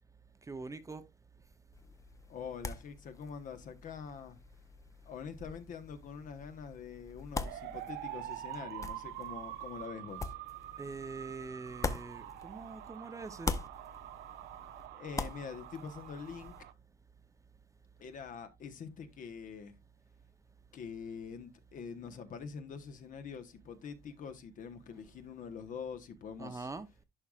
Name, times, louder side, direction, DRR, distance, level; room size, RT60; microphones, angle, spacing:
voice 1, 0.5-1.0 10.8-13.5 26.4-26.9, right 3 dB, 20° right, 0.7 m, -43 dB
sound 1, 1.7-12.9 13.2-16.6, left 3 dB, 20° left, 0.7 m, -43 dB
voice 2, 2.3-4.4 5.1-10.4 14.9-16.5 18.0-19.8 20.7-26.7, left 6 dB, 50° left, 1.1 m, -45 dB
sound 2, 7.4-16.7, right 13 dB, 80° right, 0.7 m, -46 dB
11.0 x 4.8 x 2.4 m
cardioid pair, 110°, 17 cm